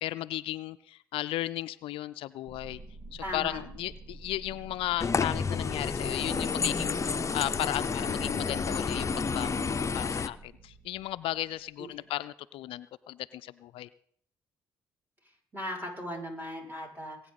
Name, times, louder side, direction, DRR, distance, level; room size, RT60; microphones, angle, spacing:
voice 1, 0.0-2.8 3.1-13.9, left 15 dB, 70° left, 15 dB, 0.4 m, -35 dB
sound 1, 2.5-11.7, right 2 dB, 70° right, 2.8 m, -46 dB
voice 2, 3.2-3.6 11.8-12.0 15.5-17.3, equal, 20° right, 0 dB, 6.5 m, -38 dB
sound 2, 5.0-10.3, left 5 dB, 35° left, 0.7 m, -30 dB
21.0 x 9.2 x 4.1 m, 0.62 s
hypercardioid pair, 55°, 9 cm